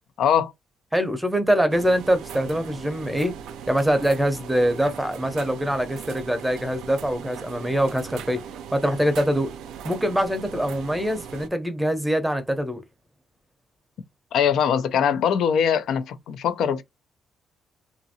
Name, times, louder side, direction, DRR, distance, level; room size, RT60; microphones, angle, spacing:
voice 1, 0.2-0.5 14.3-16.8, left 8 dB, 75° left, 0.5 m, -22 dB
voice 2, 0.9-3.3 3.7-8.4 8.7-9.5 9.8-12.8, equal, 5° right, 0.6 m, -23 dB
sound 1, 1.7-11.5, right 8 dB, 85° right, 0.4 m, -39 dB
2.8 x 2.5 x 2.7 m
cardioid pair, 90°, 0 cm